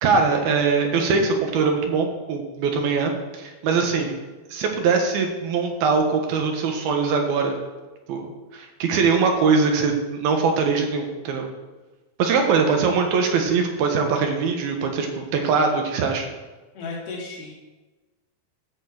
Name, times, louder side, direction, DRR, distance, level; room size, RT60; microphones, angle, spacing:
voice 1, 0.0-4.1 4.5-7.6 8.1-11.5 12.2-16.3, right 5 dB, 80° right, 3 dB, 3.1 m, -22 dB
voice 2, 3.7-4.1 16.7-17.5, left 3 dB, 75° left, -2 dB, 4.0 m, -35 dB
11.5 x 4.5 x 8.1 m, 1.2 s
omnidirectional pair, 4.3 m